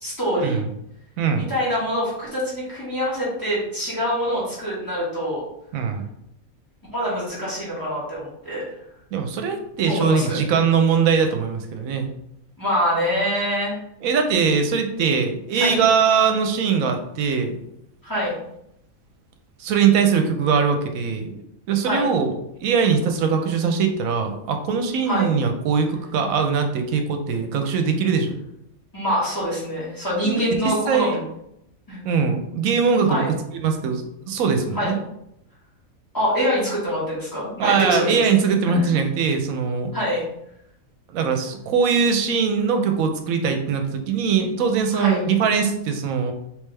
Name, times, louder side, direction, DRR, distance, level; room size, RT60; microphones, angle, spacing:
voice 1, 0.0-0.6 1.3-5.4 6.9-8.6 9.9-10.4 12.6-13.8 15.6-15.8 18.0-18.4 21.8-22.1 25.0-25.3 28.9-31.2 31.9-32.0 33.1-33.3 34.7-34.9 36.1-38.9 39.9-40.3 44.9-45.2, equal, 15° left, -8 dB, 1.5 m, -25 dB
voice 2, 5.7-6.1 9.1-12.1 14.0-17.6 19.6-21.4 21.7-22.3 22.6-28.3 30.2-31.2 32.0-33.2 33.6-35.0 37.6-39.9 41.1-46.3, right 6 dB, 75° right, 6 dB, 1.0 m, -21 dB
3.3 x 3.2 x 3.2 m, 0.79 s
omnidirectional pair, 1.5 m